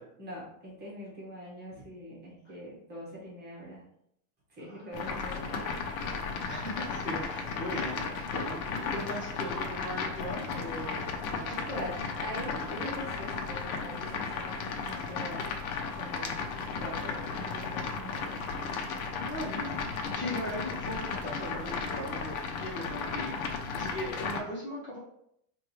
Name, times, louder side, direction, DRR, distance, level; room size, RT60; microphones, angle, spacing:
voice 1, 0.2-3.8 4.5-5.8 11.5-15.5 16.0-18.4, equal, 25° right, -4 dB, 1.4 m, -43 dB
voice 2, 4.6-5.5 6.5-11.6 19.2-25.0, equal, 25° left, -5 dB, 1.2 m, -39 dB
sound 1, 4.9-24.4, left 5 dB, 85° left, 0.9 m, -35 dB
4.9 x 2.6 x 3.1 m, 0.73 s
supercardioid pair, 150°, 42 cm